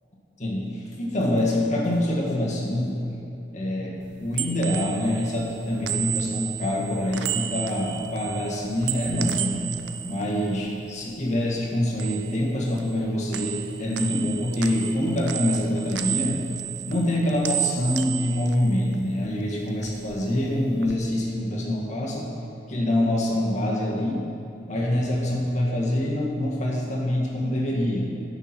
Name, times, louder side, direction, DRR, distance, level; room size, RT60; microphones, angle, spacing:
voice 1, 0.4-3.0 3.5-9.7 10.1-16.4 16.9-22.3 22.7-24.2 24.7-28.1, left 1 dB, 40° left, -3 dB, 1.6 m, -25 dB
sound 1, 4.0-11.3 11.6-13.0 13.3-19.3 19.6-21.0, right 12 dB, 70° right, 0.4 m, -33 dB
10.0 x 5.9 x 4.4 m, 3.0 s
head